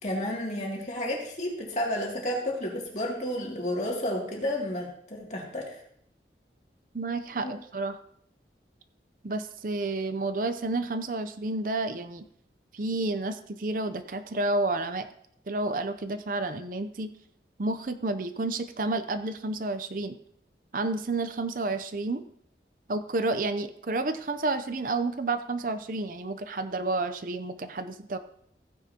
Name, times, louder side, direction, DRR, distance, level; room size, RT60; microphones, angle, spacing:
voice 1, 0.0-5.8 7.4-7.5, left 1 dB, 40° left, -2 dB, 2.5 m, -31 dB
voice 2, 6.9-8.0 9.2-12.3 12.7-15.1 15.5-17.1 17.6-20.2 20.7-22.2 22.9-28.2, right 2 dB, 50° right, 10 dB, 0.6 m, -30 dB
15.5 x 9.8 x 2.9 m, 0.66 s
head